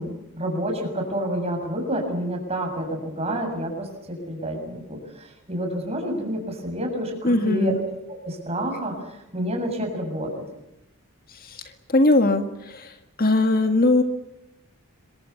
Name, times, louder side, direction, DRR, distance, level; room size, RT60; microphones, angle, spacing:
voice 1, 0.0-7.8 8.1-10.4, right 1 dB, 30° right, 3 dB, 7.3 m, -29 dB
voice 2, 7.2-7.8 11.4-11.6 11.9-12.9 13.2-14.0, left 2 dB, 40° left, 7 dB, 1.8 m, -20 dB
27.0 x 23.5 x 7.1 m, 0.90 s
head